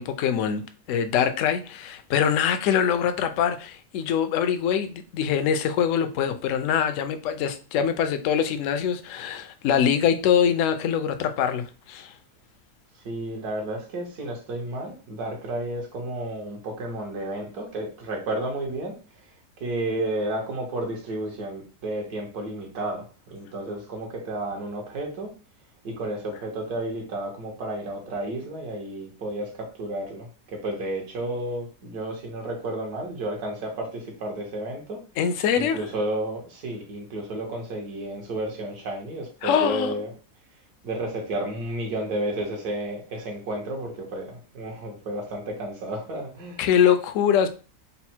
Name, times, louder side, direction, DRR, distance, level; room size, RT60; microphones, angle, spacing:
voice 1, 0.0-12.1 35.2-35.8 39.4-39.9 46.6-47.5, left 8 dB, 70° left, 0.8 m, -23 dB
voice 2, 13.0-19.2 19.6-25.3 25.8-35.0 35.5-40.1 40.8-46.6, right 1 dB, 75° right, 1.6 m, -32 dB
4.1 x 2.1 x 4.3 m
omnidirectional pair, 1.7 m